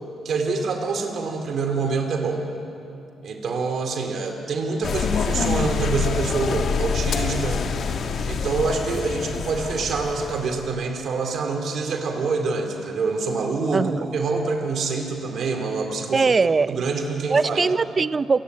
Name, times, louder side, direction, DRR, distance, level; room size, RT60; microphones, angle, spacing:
voice 1, 0.2-2.4 3.2-7.7 7.9-8.0 8.3-16.2 16.7-17.7, right 4 dB, 60° right, 3 dB, 2.5 m, -26 dB
sound 1, 4.8-10.6, left 6 dB, 60° left, 1.3 m, -26 dB
voice 2, 13.7-14.1 16.1-16.8 17.3-18.4, right 4 dB, 30° right, 17 dB, 0.4 m, -21 dB
27.5 x 10.5 x 9.3 m, 2.8 s
cardioid pair, 90°, 0 cm